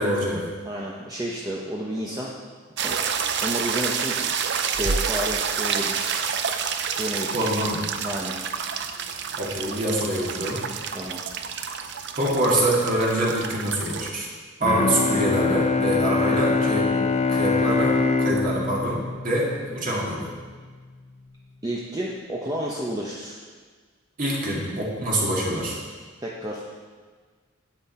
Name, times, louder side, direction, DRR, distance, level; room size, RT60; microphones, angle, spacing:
voice 1, 0.0-0.5 7.3-7.8 9.4-10.6 12.1-14.3 14.6-16.9 17.3-20.3 24.2-25.8, right 1 dB, 40° right, -4 dB, 2.0 m, -25 dB
voice 2, 0.6-2.3 2.8-4.2 4.7-6.1 6.9-7.5 8.0-8.4 10.9-11.2 21.6-23.4 26.2-26.6, equal, 20° right, -4 dB, 0.8 m, -31 dB
sound 1, 2.8-14.1, right 6 dB, 60° right, 0.6 m, -28 dB
Bowed string instrument, 14.6-20.2, left 4 dB, 35° left, 0.5 m, -24 dB
9.5 x 8.8 x 4.3 m, 1.5 s
head